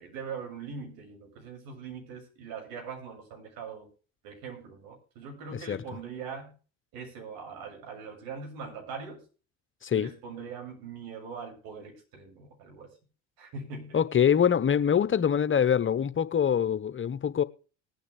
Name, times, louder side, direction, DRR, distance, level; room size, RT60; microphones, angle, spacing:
voice 1, 0.0-3.9 4.2-6.6 6.9-9.2 9.9-12.9 13.4-14.0, right 5 dB, 70° right, 7.2 m, -41 dB
voice 2, 13.9-17.4, left 8 dB, 35° left, 1.0 m, -24 dB
19.5 x 9.4 x 3.4 m
hypercardioid pair, 65°, 36 cm